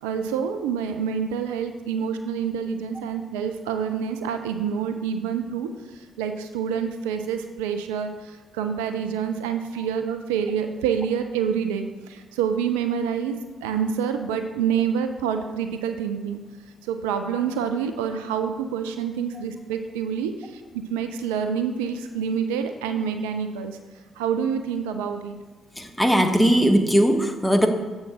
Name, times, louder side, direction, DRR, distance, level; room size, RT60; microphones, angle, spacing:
voice 1, 0.0-5.7 5.9-16.4 16.8-20.6 20.9-23.8 24.2-25.4, right 7 dB, 70° right, 7 dB, 0.3 m, -27 dB
voice 2, 25.8-27.7, equal, 5° left, 4 dB, 0.9 m, -19 dB
7.1 x 3.8 x 6.0 m, 1.3 s
figure-of-eight pair, 40°, 0 cm